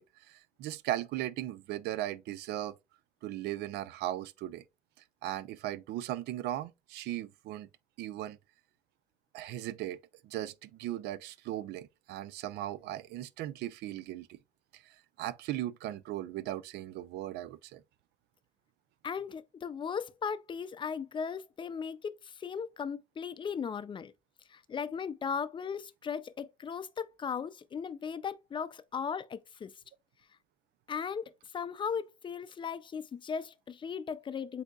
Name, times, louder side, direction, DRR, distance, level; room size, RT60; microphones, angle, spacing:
voice 1, 0.0-2.7 3.2-4.6 5.2-7.7 8.0-8.4 9.3-10.0 10.2-14.4 14.7-17.8, right 13 dB, 80° right, 0.5 m, -38 dB
voice 2, 19.0-24.1 24.5-29.7 30.9-34.6, left 6 dB, 30° left, 0.4 m, -37 dB
8.0 x 2.8 x 2.3 m
cardioid pair, 110°, 17 cm